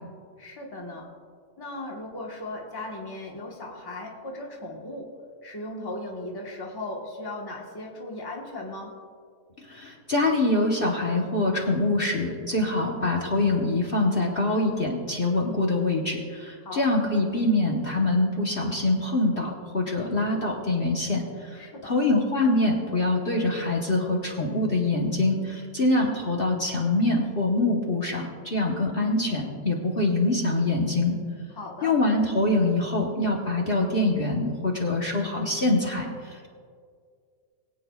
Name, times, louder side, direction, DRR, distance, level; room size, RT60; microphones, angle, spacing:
voice 1, 0.4-1.1 1.6-5.2 5.4-9.0 16.6-16.9 21.6-21.9 31.5-32.0, left 2 dB, 15° left, -1 dB, 1.1 m, -37 dB
voice 2, 9.6-31.2 31.8-36.5, left 2 dB, 40° left, -2 dB, 1.2 m, -24 dB
22.5 x 8.5 x 2.3 m, 2.1 s
omnidirectional pair, 1.6 m